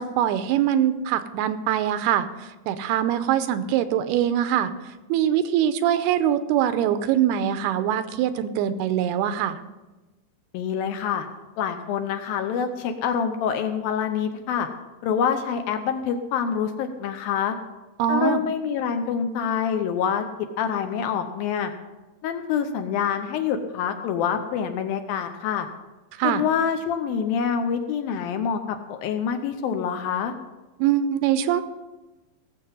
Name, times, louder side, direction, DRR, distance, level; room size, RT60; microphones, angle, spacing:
voice 1, 0.0-4.7 5.1-9.6 18.0-18.4 26.2-26.4 30.8-31.6, right 10 dB, 85° right, 11 dB, 2.6 m, -23 dB
voice 2, 10.5-11.3 11.6-14.7 15.0-17.5 18.1-20.2 20.6-21.7 22.2-25.7 26.2-30.3, left 7 dB, 75° left, 7 dB, 2.4 m, -26 dB
17.5 x 7.4 x 5.4 m, 1.1 s
omnidirectional pair, 4.6 m